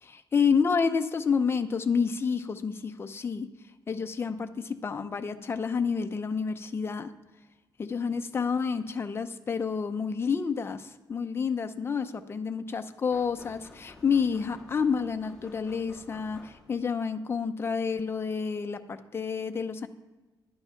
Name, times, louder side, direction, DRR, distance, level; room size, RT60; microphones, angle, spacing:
voice 1, 0.0-3.5 3.9-7.1 7.8-19.9, left 5 dB, 30° left, 8 dB, 0.7 m, -29 dB
sound 1, 13.1-17.0, left 2 dB, 5° left, 1.8 m, -52 dB
11.5 x 8.8 x 5.7 m, 1.2 s
wide cardioid pair, 145°, 8 cm